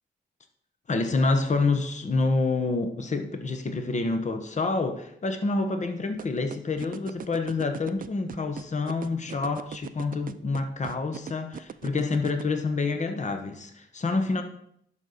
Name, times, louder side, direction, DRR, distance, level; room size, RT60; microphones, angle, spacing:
voice 1, 0.9-14.4, left 3 dB, 40° left, 1.1 m, -27 dB
sound 1, 6.2-12.4, right 8 dB, 50° right, 0.5 m, -38 dB
11.5 x 5.4 x 4.2 m
cardioid pair, 75°, 18 cm